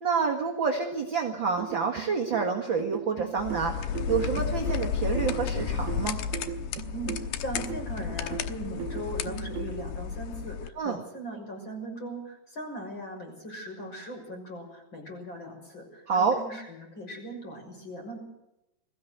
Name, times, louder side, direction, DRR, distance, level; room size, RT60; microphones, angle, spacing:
voice 1, 0.0-3.8 4.1-6.2 10.8-11.0 16.1-16.4, right 5 dB, 45° right, 1 dB, 1.8 m, -28 dB
sound 1, 1.6-9.8, right 11 dB, 75° right, 2.9 m, -38 dB
sound 2, 3.4-10.7, left 7 dB, 80° left, 2.9 m, -32 dB
voice 2, 6.9-18.2, right 1 dB, 30° left, 2 dB, 6.9 m, -39 dB
21.5 x 16.0 x 8.1 m, 0.86 s
omnidirectional pair, 4.6 m